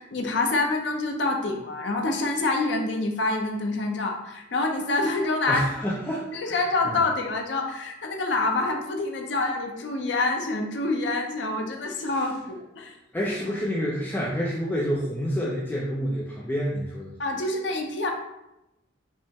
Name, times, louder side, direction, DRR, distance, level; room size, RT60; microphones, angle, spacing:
voice 1, 0.0-5.6 6.3-13.0 17.2-18.1, left 2 dB, 70° left, 2 dB, 0.6 m, -26 dB
voice 2, 5.5-6.6 6.8-7.0 13.1-17.1, equal, 10° left, -5 dB, 0.4 m, -28 dB
5.1 x 2.1 x 3.5 m, 0.91 s
head